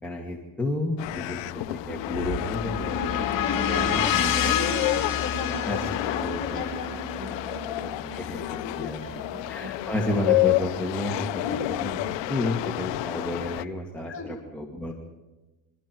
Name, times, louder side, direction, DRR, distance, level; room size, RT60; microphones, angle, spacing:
voice 1, 0.0-3.0 3.5-4.0 5.7-6.7 7.7-12.0 12.3-14.9, left 1 dB, 5° left, -2 dB, 2.3 m, -32 dB
sound 1, 1.0-13.6, left 19 dB, 70° left, 0.7 m, -30 dB
sound 2, 1.5-9.6, left 10 dB, 45° left, 2.5 m, -30 dB
sound 3, 2.1-12.3, right 1 dB, 45° right, 8.0 m, -42 dB
voice 2, 2.8-5.8 6.1-7.6 8.0-8.3 8.7-9.3 11.4-11.6 14.0-14.3, left 3 dB, 30° left, -1 dB, 7.9 m, -34 dB
28.0 x 24.0 x 4.7 m, 1.1 s
cardioid pair, 130°, 45 cm